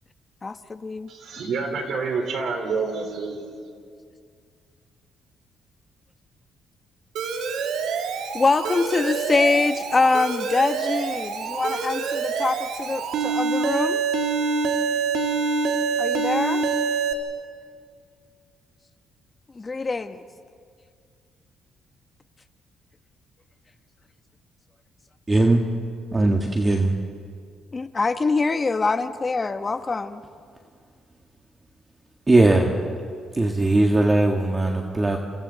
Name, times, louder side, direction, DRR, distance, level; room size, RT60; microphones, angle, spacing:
voice 1, 0.4-1.1 8.3-14.0 16.0-16.6 19.5-20.2 27.7-30.2, left 3 dB, 30° left, 9 dB, 1.2 m, -24 dB
voice 2, 1.1-3.4, right 4 dB, 70° right, 4 dB, 4.1 m, -28 dB
Alarm, 7.2-17.1, right 5 dB, 85° right, 2.1 m, -26 dB
voice 3, 25.3-25.6 26.1-26.9 32.3-32.8 33.3-35.2, right 2 dB, 20° right, 1 dB, 1.8 m, -19 dB
29.0 x 27.5 x 4.1 m, 2.2 s
cardioid pair, 90°, 0 cm